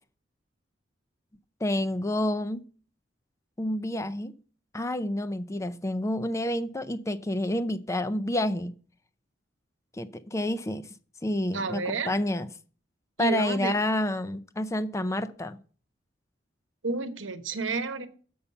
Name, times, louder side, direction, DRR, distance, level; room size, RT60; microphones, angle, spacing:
voice 1, 1.6-2.6 3.6-4.3 4.7-8.7 10.0-10.9 11.2-12.5 13.2-15.6, left 1 dB, 15° left, 11 dB, 0.5 m, -29 dB
voice 2, 11.5-12.1 13.2-13.7 16.8-18.1, right 4 dB, 90° right, 10 dB, 1.0 m, -30 dB
7.0 x 5.5 x 6.7 m, 0.41 s
head